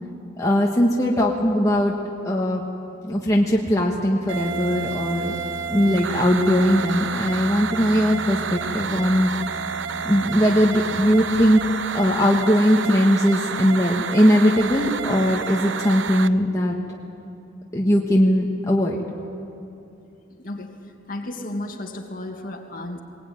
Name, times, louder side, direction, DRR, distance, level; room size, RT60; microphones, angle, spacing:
voice 1, 0.4-1.9 2.2-2.6 3.0-5.3 5.7-9.3 10.0-11.6 11.9-16.8 17.7-19.0, equal, 15° left, 1.5 m, -19 dB
Bowed string instrument, 4.1-12.1, right 1 dB, 25° right, 2.1 m, -39 dB
sound 1, 4.3-16.3, right 6 dB, 70° right, 0.7 m, -30 dB
voice 2, 20.4-23.0, left 1 dB, 45° left, 2.4 m, -33 dB
21.0 x 20.5 x 9.5 m
head